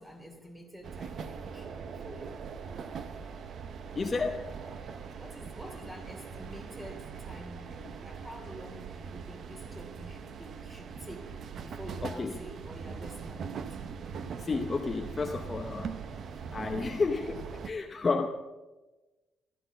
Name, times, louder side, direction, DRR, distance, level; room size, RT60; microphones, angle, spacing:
voice 1, 0.0-1.7 1.9-2.4 5.2-11.3 11.6-13.9, equal, 10° right, 3 dB, 2.8 m, -48 dB
sound 1, 0.8-17.7, right 6 dB, 45° right, 0.9 m, -41 dB
voice 2, 3.9-4.5 12.0-12.4 14.4-16.0 16.5-18.3, left 4 dB, 20° left, 4 dB, 0.8 m, -31 dB
15.0 x 13.0 x 7.0 m, 1.2 s
cardioid pair, 180°, 0 cm